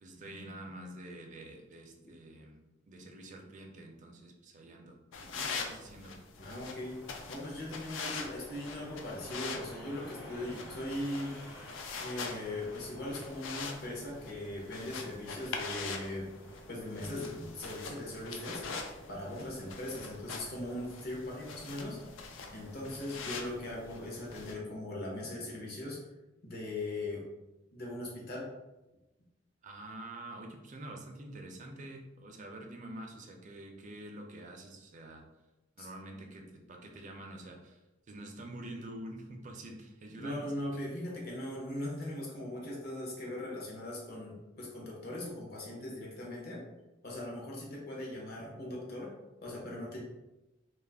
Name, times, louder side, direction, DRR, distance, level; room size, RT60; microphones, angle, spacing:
voice 1, 0.0-6.2 29.6-35.2 35.8-37.8 38.1-40.7, right 1 dB, 40° right, 2 dB, 0.4 m, -47 dB
sound 1, 5.1-24.6, left 4 dB, 70° left, 0.4 m, -44 dB
sound 2, 6.3-24.5, left 1 dB, 90° left, 0.8 m, -53 dB
voice 2, 6.4-7.0 7.3-11.4 12.0-16.3 16.7-18.7 19.1-22.0 22.5-26.0 26.4-27.3 27.7-28.5 35.8-35.9 40.2-46.7 47.0-49.1 49.4-50.0, left 1 dB, 55° left, -3 dB, 0.8 m, -39 dB
2.3 x 2.0 x 3.3 m, 1.0 s
head